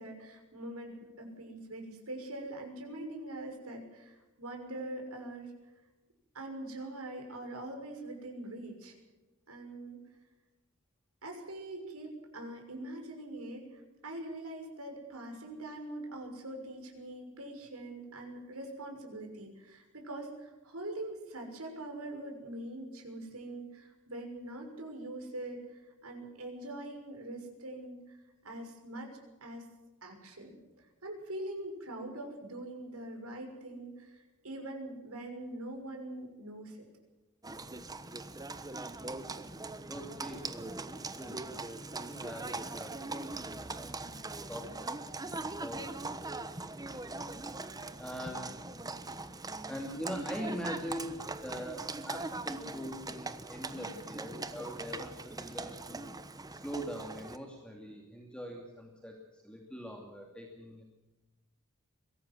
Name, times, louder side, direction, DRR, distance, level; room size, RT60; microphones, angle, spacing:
voice 1, 0.0-5.5 6.3-9.0 9.5-10.0 11.2-29.7 30.0-36.9, right 1 dB, 85° right, 3 dB, 6.2 m, -43 dB
Livestock farm animals working animals, 37.4-57.4, right 3 dB, 15° right, 1.2 m, -41 dB
voice 2, 39.9-41.5 42.0-43.3 43.6-43.9 44.5-47.3 48.0-48.5 49.7-56.1 56.5-60.8, equal, 5° left, 1 dB, 2.6 m, -43 dB
23.0 x 17.5 x 7.6 m, 1.1 s
head